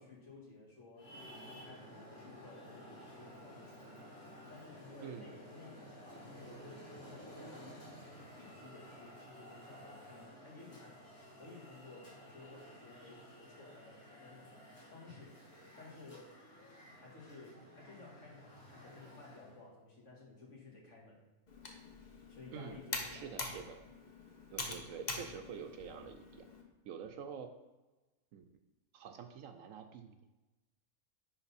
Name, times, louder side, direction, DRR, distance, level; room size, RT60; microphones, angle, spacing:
voice 1, 0.0-10.9 11.4-15.4 15.8-16.4 17.0-21.2 22.3-23.4, left 3 dB, 55° left, -2 dB, 2.0 m, -55 dB
Traffic noise roadway noise, 0.9-19.6, equal, 75° left, 3.0 m, -54 dB
Computer keyboard, 21.5-26.6, left 3 dB, 35° left, 0.9 m, -45 dB
voice 2, 22.5-22.8 23.1-23.8 24.5-26.5 26.8-27.5 28.3-28.6 28.9-30.2, right 7 dB, 70° right, 7 dB, 0.9 m, -47 dB
9.9 x 3.9 x 4.1 m, 1.1 s
omnidirectional pair, 1.5 m